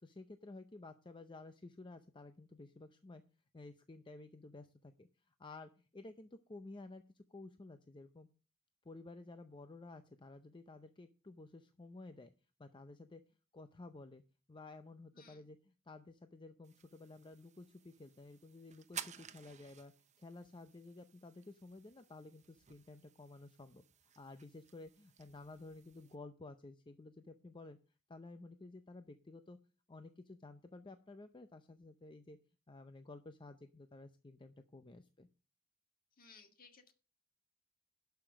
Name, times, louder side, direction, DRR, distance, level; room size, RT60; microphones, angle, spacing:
voice 1, 0.0-3.2 3.5-8.3 8.8-12.3 12.6-13.2 13.5-14.2 14.5-15.6 15.9-27.8 28.1-29.6 29.9-32.4 32.7-35.3, left 2 dB, 25° left, 9 dB, 0.6 m, -53 dB
voice 2, 15.1-15.5 36.1-36.9, left 5 dB, 45° left, 6 dB, 1.7 m, -61 dB
sound 1, 16.6-26.2, right 9 dB, 35° right, 0.7 m, -55 dB
11.5 x 5.8 x 6.1 m, 0.36 s
head